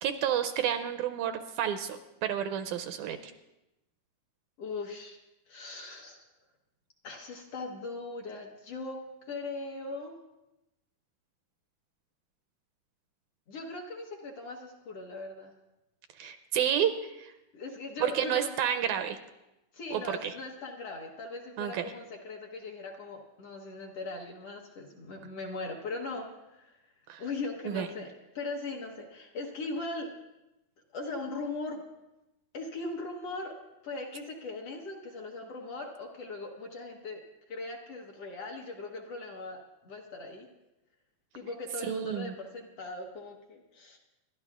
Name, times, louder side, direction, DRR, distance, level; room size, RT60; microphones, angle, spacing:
voice 1, 0.0-3.2 16.2-17.3 18.0-19.2 19.9-20.3 21.6-21.9 27.1-27.2 27.7-27.9 41.8-42.3, right 9 dB, 80° right, 8 dB, 1.9 m, -30 dB
voice 2, 4.6-5.2 5.5-6.2 7.0-10.2 13.5-15.5 17.5-18.5 19.7-26.8 27.2-30.1 30.9-31.8 32.5-33.6 33.8-37.2 37.5-40.5 41.3-44.0, left 3 dB, 60° left, 1 dB, 1.9 m, -39 dB
27.0 x 12.0 x 2.4 m, 0.95 s
omnidirectional pair, 3.6 m